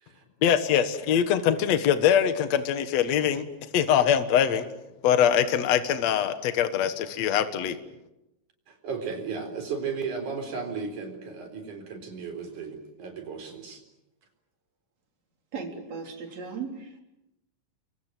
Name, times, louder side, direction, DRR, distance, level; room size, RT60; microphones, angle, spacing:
voice 1, 0.4-3.4 3.7-4.7 5.0-7.8, left 9 dB, 60° left, 10 dB, 2.5 m, -23 dB
voice 2, 8.7-13.8, right 5 dB, 75° right, 5 dB, 5.6 m, -35 dB
voice 3, 15.5-17.0, right 5 dB, 55° right, 3 dB, 4.8 m, -36 dB
30.0 x 23.5 x 7.7 m, 0.90 s
omnidirectional pair, 3.6 m